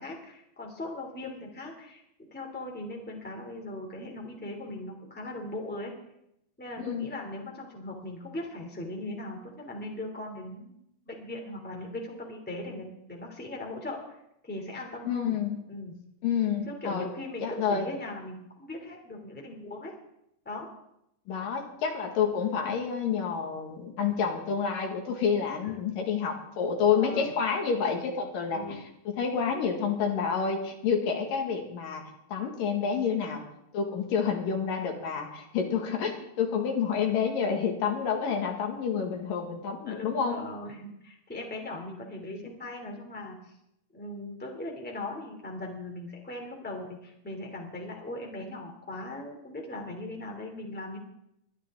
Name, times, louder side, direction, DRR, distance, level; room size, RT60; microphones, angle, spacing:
voice 1, 0.0-2.0 2.3-5.9 6.6-10.8 11.1-14.2 14.4-15.3 15.7-15.9 16.7-19.9 20.4-20.7 26.9-27.3 28.5-28.8 39.8-43.5 43.9-51.0, left 1 dB, 5° left, 0 dB, 2.4 m, -39 dB
voice 2, 6.8-7.1 15.1-15.6 16.2-17.1 17.4-17.9 21.3-28.8 29.2-33.4 33.7-40.4, left 6 dB, 80° left, 2 dB, 3.5 m, -29 dB
22.0 x 12.5 x 3.8 m, 0.81 s
omnidirectional pair, 3.9 m